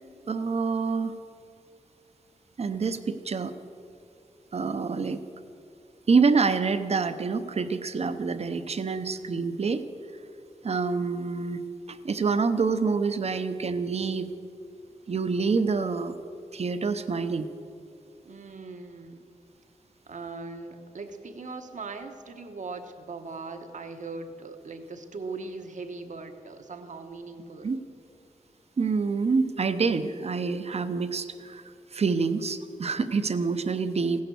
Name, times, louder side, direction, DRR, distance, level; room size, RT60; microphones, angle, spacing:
voice 1, 0.3-1.2 2.6-3.5 4.5-5.2 6.1-9.8 10.6-11.6 11.9-14.3 15.1-16.1 16.5-17.5 27.6-27.8 28.8-31.6 31.9-34.2, right 4 dB, 50° right, 11 dB, 0.7 m, -26 dB
voice 2, 18.2-19.3 20.1-27.7, right 3 dB, 65° right, 7 dB, 1.2 m, -40 dB
16.0 x 10.5 x 7.0 m, 2.5 s
wide cardioid pair, 110°, 14 cm